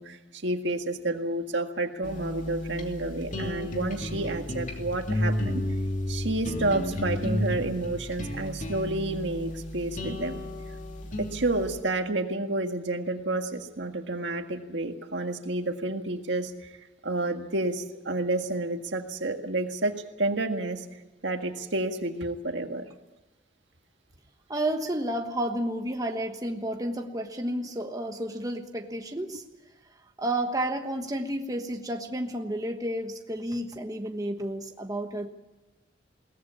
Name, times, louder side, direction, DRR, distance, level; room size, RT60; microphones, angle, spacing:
voice 1, 0.0-5.6 6.1-10.4 11.2-16.7 17.0-20.9 21.2-22.9, right 2 dB, 70° right, 5 dB, 1.8 m, -30 dB
sound 1, 2.0-11.8, left 1 dB, 40° left, 2.9 m, -32 dB
voice 2, 24.5-29.4 30.2-35.3, right 1 dB, 20° right, 4 dB, 1.3 m, -31 dB
22.0 x 18.5 x 8.5 m, 1.1 s
head